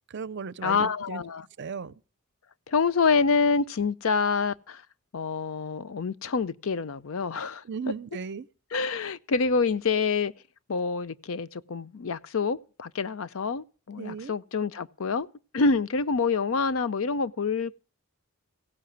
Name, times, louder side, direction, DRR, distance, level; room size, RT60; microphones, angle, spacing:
voice 1, 0.1-1.2 1.6-1.9 7.6-8.5 14.0-14.4, right 5 dB, 50° right, 0.5 m, -36 dB
voice 2, 0.6-1.4 2.7-4.8 5.1-7.6 8.7-10.3 10.7-15.3 15.5-17.8, left 4 dB, 60° left, 0.5 m, -27 dB
16.0 x 5.7 x 9.2 m
head